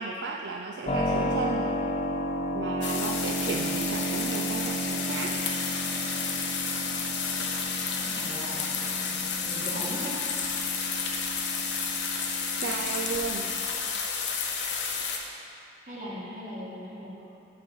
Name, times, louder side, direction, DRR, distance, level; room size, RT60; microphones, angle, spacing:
voice 1, 0.0-1.7 2.5-5.3 8.8-8.9 12.6-13.5, right 4 dB, 70° right, -1 dB, 0.4 m, -34 dB
Keyboard (musical), 0.9-13.6, right 1 dB, 30° left, 0.5 m, -33 dB
sound 1, 2.8-15.2, left 5 dB, 70° left, 0.8 m, -31 dB
voice 2, 8.0-10.2 15.8-17.2, equal, 40° right, -7 dB, 1.7 m, -39 dB
7.2 x 5.4 x 5.5 m, 2.6 s
head